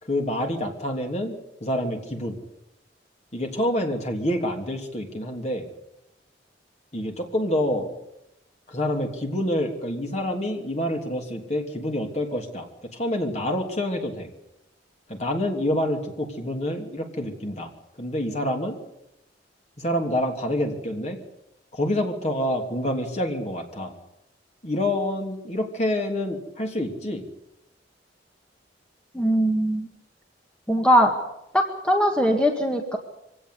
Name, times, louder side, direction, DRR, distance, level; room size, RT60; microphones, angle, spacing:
voice 1, 0.0-2.4 3.3-5.7 6.9-7.9 8.7-14.3 15.1-17.7 18.0-18.8 19.8-21.2 21.7-23.9 24.6-27.3, left 1 dB, 35° left, 3 dB, 3.1 m, -27 dB
voice 2, 29.1-29.9 30.7-31.2 31.5-33.0, equal, 5° left, 2 dB, 1.8 m, -21 dB
24.0 x 17.0 x 8.4 m, 0.85 s
head